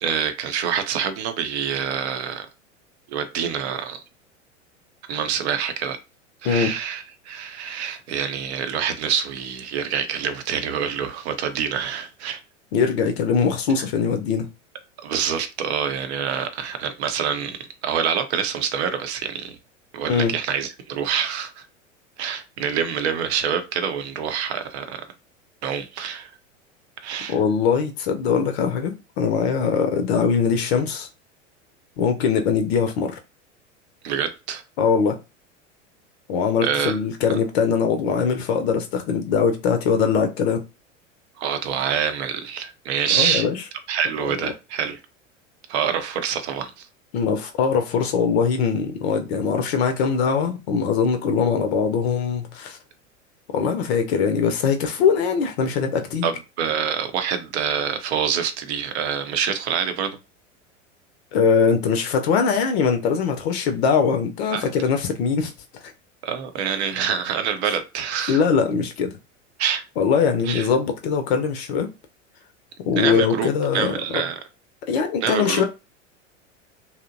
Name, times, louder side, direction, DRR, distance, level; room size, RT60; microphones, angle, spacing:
voice 1, 0.0-2.5 3.1-4.0 5.1-6.0 6.4-12.4 15.0-17.6 17.8-19.6 19.9-21.6 22.2-25.0 25.6-26.3 27.0-27.4 34.0-34.6 36.6-37.0 37.3-37.4 41.4-43.4 43.9-45.0 45.7-46.9 56.2-60.2 64.5-64.7 66.2-68.4 69.6-69.8 70.5-70.7 73.0-74.4 75.2-75.6, right 8 dB, 60° right, 0.6 m, -26 dB
voice 2, 12.7-14.5 20.1-20.3 27.3-31.1 32.0-33.2 34.8-35.2 36.3-40.6 43.1-43.6 44.2-44.3 47.1-52.8 53.5-56.3 61.3-65.5 68.3-69.1 70.0-71.9 72.8-74.2 74.9-75.6, left 6 dB, 55° left, 0.5 m, -21 dB
2.7 x 2.0 x 2.5 m
figure-of-eight pair, 90°, 38 cm